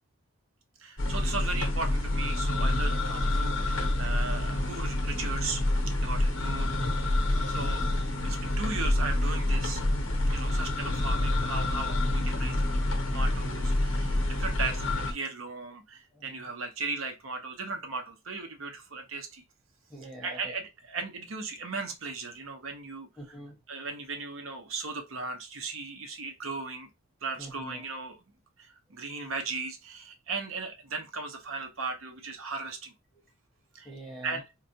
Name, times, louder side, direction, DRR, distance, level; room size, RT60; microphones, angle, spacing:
voice 1, 0.8-5.6 6.0-6.7 7.0-7.9 8.2-9.8 10.3-19.4 20.2-23.1 23.7-26.9 27.2-28.2 28.6-32.9 33.7-33.9 34.2-34.4, right 4 dB, 75° right, 0.8 m, -37 dB
sound 1, 1.0-15.1, left 1 dB, 65° left, 0.7 m, -27 dB
voice 2, 16.1-16.5 19.9-20.5 23.2-23.6 27.4-27.8 33.8-34.4, right 1 dB, ahead, 1.0 m, -45 dB
4.0 x 2.2 x 2.7 m
head